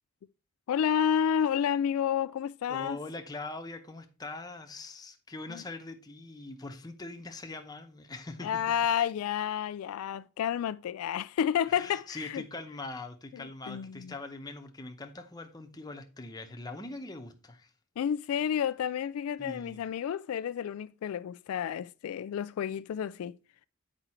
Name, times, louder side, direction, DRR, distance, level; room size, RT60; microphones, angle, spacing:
voice 1, 0.7-3.0 5.5-5.6 8.4-12.4 13.3-14.1 18.0-23.3, left 8 dB, 80° left, 0.3 m, -30 dB
voice 2, 2.7-8.7 11.7-17.7 19.4-19.8, left 2 dB, 20° left, 0.8 m, -42 dB
8.0 x 5.0 x 4.3 m
head